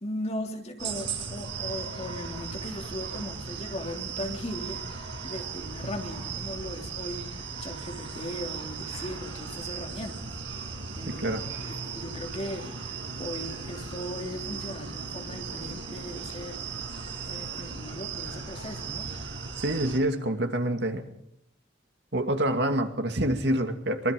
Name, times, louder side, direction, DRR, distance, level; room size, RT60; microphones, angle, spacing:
voice 1, 0.0-4.8 5.2-17.0 17.3-19.1, left 1 dB, 35° left, 3 dB, 3.1 m, -38 dB
sound 1, 0.8-20.0, right 5 dB, 85° right, 5.1 m, -37 dB
voice 2, 11.1-11.4 19.6-21.1 22.1-24.1, right 1 dB, 70° right, 6 dB, 2.4 m, -27 dB
24.0 x 23.5 x 5.3 m, 0.73 s
head